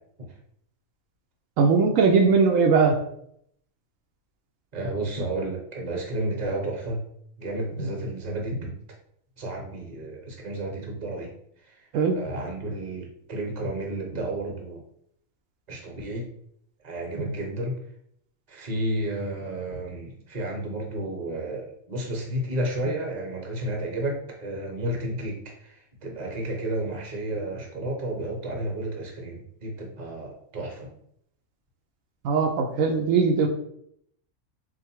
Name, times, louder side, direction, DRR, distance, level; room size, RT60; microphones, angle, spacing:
voice 1, 1.6-3.0 7.8-7.9 11.9-12.2 17.3-17.4 32.2-33.5, right 5 dB, 80° right, 4 dB, 1.0 m, -20 dB
voice 2, 4.7-7.0 7.4-8.7 9.4-11.3 11.6-11.8 12.1-14.8 15.7-16.3 16.8-17.8 18.5-30.9, right 1 dB, 35° right, 0 dB, 1.0 m, -32 dB
3.7 x 2.6 x 4.4 m, 0.70 s
omnidirectional pair, 1.4 m